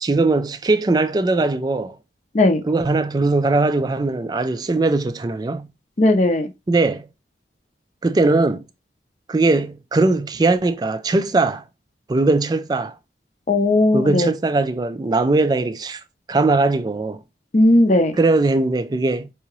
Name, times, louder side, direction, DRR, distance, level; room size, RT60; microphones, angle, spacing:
voice 1, 0.0-2.0 2.7-5.7 6.7-7.1 8.0-8.6 9.3-11.6 12.1-12.9 13.9-16.0 16.3-17.2 18.2-19.3, right 3 dB, 25° right, 0.3 m, -20 dB
voice 2, 6.0-6.5 13.5-14.3 17.5-18.1, left 1 dB, 40° left, 0.6 m, -16 dB
4.7 x 2.8 x 2.9 m
head